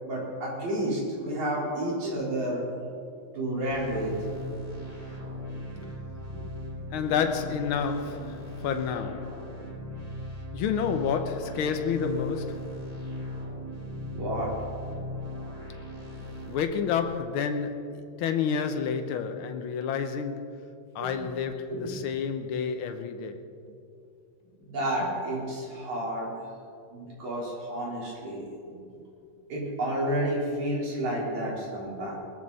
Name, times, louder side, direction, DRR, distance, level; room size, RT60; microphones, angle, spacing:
voice 1, 0.0-2.6 3.4-4.1 6.3-6.5 14.2-14.5 21.0-21.1 21.7-21.8 24.7-26.3 26.9-28.5 28.9-29.0 29.5-32.1, right 1 dB, 70° right, 5.3 m, -30 dB
sound 1, 3.7-16.6, left 1 dB, 15° right, 1.7 m, -38 dB
voice 2, 6.9-9.4 10.5-12.7 16.5-20.6 20.9-23.4, left 6 dB, 75° left, 1.2 m, -30 dB
20.5 x 13.5 x 4.1 m
omnidirectional pair, 3.4 m